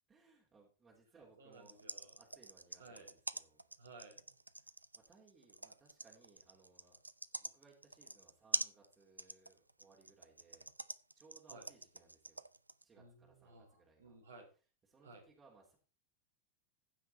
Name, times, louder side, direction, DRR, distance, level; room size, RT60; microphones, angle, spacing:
voice 1, 0.1-1.8 2.1-3.6 4.6-7.0 7.4-10.7 11.1-12.4 12.8-14.1 14.8-15.8, right 4 dB, 20° right, -3 dB, 3.1 m, -66 dB
voice 2, 1.4-2.1 2.8-3.1 3.8-4.3 11.5-11.7 13.0-14.5 15.0-15.2, right 3 dB, 70° right, 4 dB, 3.3 m, -57 dB
sound 1, 1.5-12.8, right 2 dB, 85° right, 0.4 m, -44 dB
15.0 x 5.7 x 4.2 m, 0.34 s
figure-of-eight pair, 90°, 0 cm